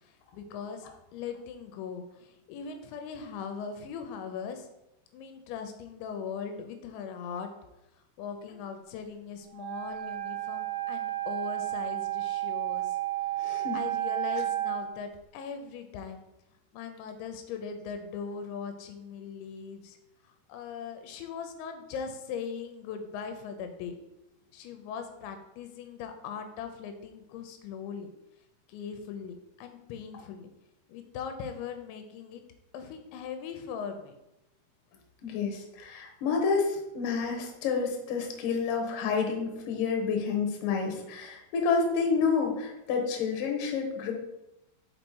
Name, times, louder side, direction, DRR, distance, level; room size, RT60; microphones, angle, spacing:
voice 1, 0.0-4.7 5.1-7.5 8.2-13.0 13.4-16.2 16.7-20.0 20.5-24.0 24.5-28.1 28.7-30.5 30.9-32.4 32.7-34.1, left 6 dB, 85° left, 6 dB, 2.9 m, -40 dB
Wind instrument woodwind instrument, 9.5-14.8, right 14 dB, 70° right, 2.2 m, -32 dB
voice 2, 13.4-13.8 35.2-44.1, left 5 dB, 65° left, 2 dB, 2.2 m, -29 dB
5.7 x 5.3 x 4.6 m, 0.90 s
omnidirectional pair, 5.3 m